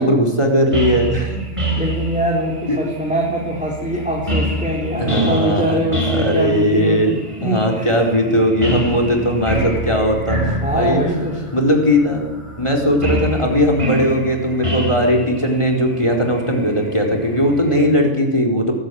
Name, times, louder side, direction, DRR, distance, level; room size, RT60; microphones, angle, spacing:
voice 1, 0.0-1.4 2.7-2.8 5.0-5.8 6.1-11.0 11.3-12.3 12.6-18.7, equal, 25° left, 3 dB, 4.4 m, -18 dB
sound 1, 0.7-18.0, right 1 dB, 25° right, 5.4 m, -27 dB
voice 2, 1.8-8.1 10.6-11.4, equal, 5° right, -1 dB, 4.3 m, -22 dB
23.5 x 15.0 x 9.7 m, 1.1 s
omnidirectional pair, 1.3 m